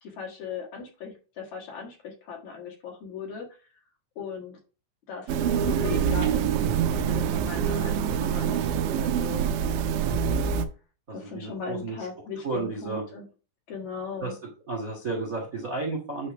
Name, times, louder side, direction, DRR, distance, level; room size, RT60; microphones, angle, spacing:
voice 1, 0.0-3.7 4.2-4.6 5.1-6.6 6.9-9.5 11.1-13.3 13.7-14.3, left 6 dB, 50° left, 0 dB, 2.5 m, -38 dB
sound 1, 5.3-10.7, right 8 dB, 90° right, 3.1 m, -25 dB
voice 2, 10.0-10.5 11.1-12.0 12.4-13.0 14.2-14.3 14.7-16.3, right 3 dB, 75° right, 0 dB, 0.7 m, -32 dB
9.4 x 3.2 x 6.0 m, 0.34 s
omnidirectional pair, 5.2 m